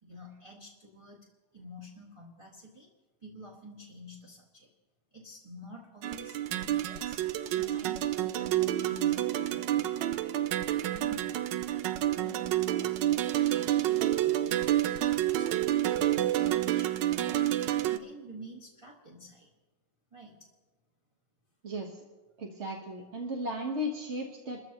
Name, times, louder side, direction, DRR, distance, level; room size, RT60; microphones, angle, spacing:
voice 1, 0.0-2.9 3.2-4.7 5.1-7.2 7.5-14.9 15.3-19.5 20.1-20.5, equal, 20° right, -3 dB, 1.6 m, -50 dB
sound 1, 6.0-18.0, right 13 dB, 80° right, 1.3 m, -29 dB
voice 2, 21.6-22.0 22.4-24.6, equal, 40° right, 1 dB, 1.5 m, -35 dB
29.0 x 14.5 x 3.0 m, 1.2 s
omnidirectional pair, 1.9 m